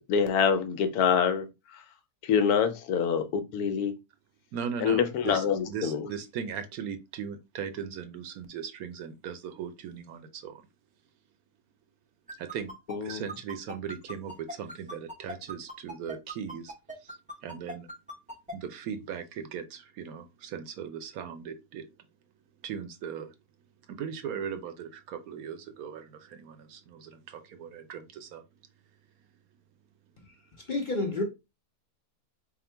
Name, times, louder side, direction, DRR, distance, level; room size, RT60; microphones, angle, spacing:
voice 1, 0.1-1.4 2.3-3.9 4.8-6.1 12.9-13.2, left 7 dB, 80° left, 1.1 m, -25 dB
voice 2, 4.5-10.6 12.4-12.7 13.0-16.7 17.0-17.2 17.4-17.9 18.5-21.9 22.6-23.3 23.9-28.4, right 7 dB, 75° right, 1.0 m, -38 dB
sound 1, 12.3-18.5, equal, 10° right, 0.4 m, -39 dB
voice 3, 30.7-31.2, left 2 dB, 45° left, 0.6 m, -29 dB
3.6 x 2.1 x 4.4 m
omnidirectional pair, 1.6 m